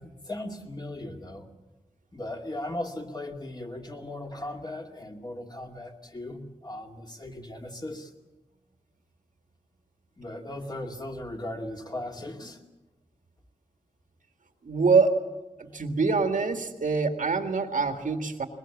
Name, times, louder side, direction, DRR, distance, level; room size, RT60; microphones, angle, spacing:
voice 1, 0.0-1.5 2.1-8.1 10.2-12.6, left 1 dB, 30° left, 2 dB, 2.3 m, -37 dB
voice 2, 14.6-15.2 15.6-18.5, right 4 dB, 85° right, 6 dB, 1.9 m, -25 dB
22.0 x 21.0 x 7.3 m, 1.1 s
wide cardioid pair, 90°, 13 cm